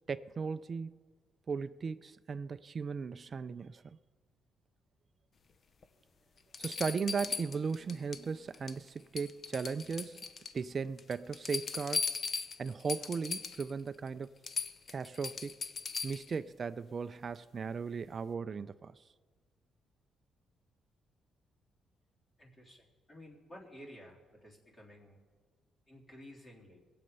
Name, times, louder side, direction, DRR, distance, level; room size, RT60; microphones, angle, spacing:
voice 1, 0.1-0.9 1.5-3.8 6.6-10.2 10.5-12.1 12.6-14.3 14.9-15.6 16.0-19.0, right 5 dB, 40° right, 0.4 m, -37 dB
sound 1, 5.8-5.9 6.5-8.2 8.5-8.9 9.2-10.6 11.0-13.7 14.1-14.2 14.4-16.3 18.0-18.1, left 5 dB, 45° left, 0.8 m, -38 dB
voice 2, 22.4-25.2 25.9-26.8, equal, 25° left, 3.5 m, -53 dB
21.5 x 7.8 x 5.5 m
cardioid pair, 90°, 0 cm